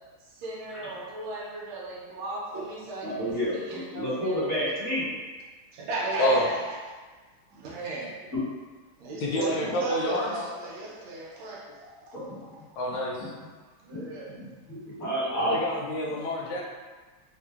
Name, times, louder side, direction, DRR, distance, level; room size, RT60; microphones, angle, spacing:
voice 1, 0.2-4.5 5.7-6.9 7.5-8.3 9.0-12.2 13.8-14.4, right 2 dB, 75° right, -4 dB, 1.3 m, -36 dB
voice 2, 3.0-5.1 12.1-12.4 13.2-13.3 13.9-14.1 14.4-15.6, equal, 35° left, -12 dB, 1.6 m, -30 dB
voice 3, 9.2-10.3 12.8-13.3 15.4-16.6, equal, 75° left, -4 dB, 1.3 m, -28 dB
4.3 x 2.4 x 2.3 m, 1.4 s
omnidirectional pair, 2.4 m